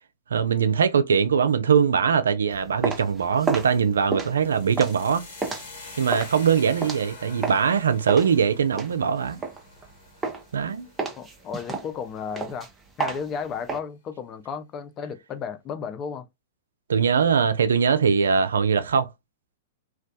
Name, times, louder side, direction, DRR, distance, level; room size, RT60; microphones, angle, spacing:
voice 1, 0.3-5.2 6.0-9.4 10.5-10.9 16.9-19.1, right 6 dB, 80° right, 0.3 m, -21 dB
sound 1, 2.5-7.7 8.1-9.9 10.2-10.6 11.0-13.8, right 4 dB, 15° right, 0.6 m, -31 dB
sound 2, 4.3-12.3, left 3 dB, 60° left, 1.1 m, -46 dB
voice 2, 11.2-12.7 13.0-16.3, left 6 dB, 30° left, 0.4 m, -34 dB
2.3 x 2.2 x 2.5 m
hypercardioid pair, 110°, 0 cm